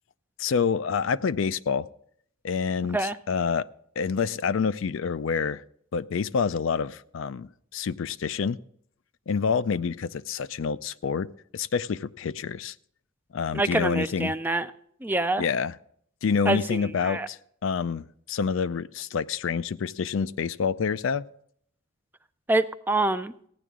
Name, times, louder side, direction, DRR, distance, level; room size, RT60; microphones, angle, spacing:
voice 1, 0.4-1.9 2.4-3.7 4.0-5.6 5.9-8.6 9.3-12.7 13.3-14.3 15.4-15.7 16.2-21.3, left 6 dB, 60° left, 16 dB, 0.4 m, -27 dB
voice 2, 13.5-14.7 15.0-15.4 16.5-17.3 22.5-23.3, right 2 dB, 10° right, 12 dB, 0.4 m, -26 dB
15.5 x 10.0 x 3.6 m, 0.64 s
head